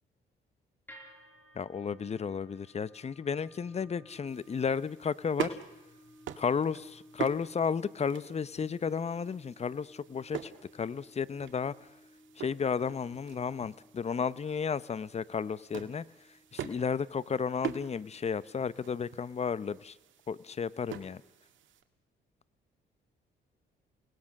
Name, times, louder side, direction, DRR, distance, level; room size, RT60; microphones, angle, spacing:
sound 1, 0.9-17.1, equal, 10° left, 6.0 m, -58 dB
voice 1, 1.6-5.6 6.3-11.7 12.4-16.0 16.5-20.0 20.3-21.2, left 6 dB, 35° left, 18 dB, 0.8 m, -33 dB
sound 2, 4.3-21.8, right 9 dB, 75° right, 1.8 m, -45 dB
29.0 x 19.0 x 6.5 m, 0.94 s
cardioid pair, 90°, 20 cm